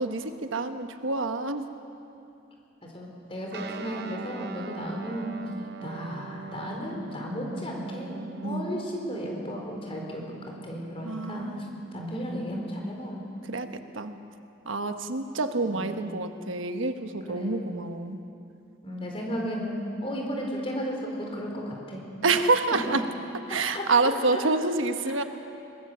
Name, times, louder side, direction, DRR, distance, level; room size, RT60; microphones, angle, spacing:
voice 1, 0.0-1.7 8.4-8.8 11.0-11.9 13.4-14.2 14.6-18.2 22.2-23.0 23.5-25.2, right 3 dB, 80° right, 8 dB, 1.2 m, -27 dB
voice 2, 2.8-5.3 5.8-13.3 15.6-15.9 17.3-17.7 18.8-22.0 22.7-22.9 23.5-24.4 25.1-25.2, equal, 30° left, 0 dB, 4.3 m, -34 dB
Guitar, 3.5-13.4, right 3 dB, 55° right, 0.8 m, -43 dB
23.0 x 21.0 x 6.9 m, 2.7 s
head